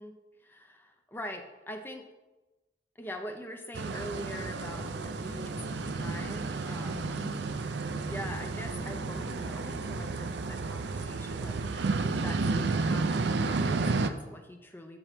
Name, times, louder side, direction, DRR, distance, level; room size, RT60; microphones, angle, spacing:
voice 1, 0.0-2.1 3.0-7.2 8.1-15.0, left 1 dB, 10° left, 5 dB, 0.5 m, -43 dB
sound 1, 3.7-14.1, right 3 dB, 70° right, 0.5 m, -32 dB
sound 2, 4.4-10.9, equal, 70° left, 1.8 m, -47 dB
8.3 x 8.2 x 3.5 m, 1.1 s
head